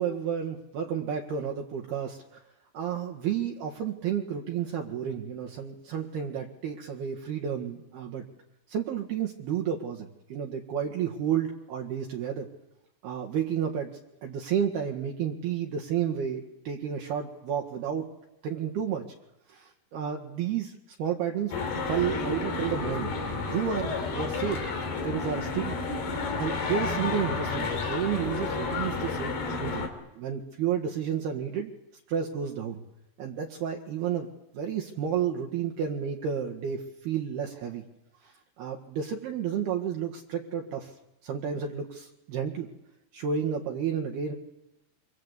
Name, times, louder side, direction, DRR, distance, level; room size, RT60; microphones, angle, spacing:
voice 1, 0.0-2.2 2.7-8.2 8.7-12.5 13.0-13.9 14.2-18.1 18.4-19.0 19.5-21.5 21.9-23.1 23.4-24.6 25.0-25.8 26.4-29.9 30.1-31.7 32.1-32.8 33.2-34.3 34.5-37.8 38.2-40.9 41.2-42.7 43.1-44.3, right 8 dB, 60° right, 1 dB, 3.5 m, -31 dB
sound 1, 21.5-29.9, left 4 dB, 60° left, 5.3 m, -31 dB
27.0 x 26.5 x 8.3 m, 0.86 s
omnidirectional pair, 5.5 m